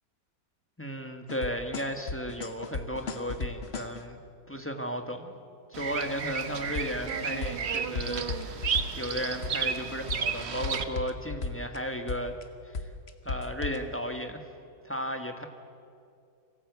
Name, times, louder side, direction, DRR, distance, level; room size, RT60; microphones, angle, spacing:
voice 1, 0.8-4.2 4.5-5.4 5.7-8.7 9.0-12.4 12.6-12.9 13.2-14.4 14.8-15.5, equal, 10° left, 5 dB, 1.2 m, -34 dB
sound 1, 1.3-4.0 6.7-7.1 7.4-9.1 9.4-9.8 10.1-11.8 12.1-12.4 12.7-13.8, left 4 dB, 40° left, 1.2 m, -35 dB
Bird vocalization bird call bird song, 5.7-10.8, right 7 dB, 45° right, 1.0 m, -33 dB
25.0 x 16.5 x 8.2 m, 2.4 s
omnidirectional pair, 1.8 m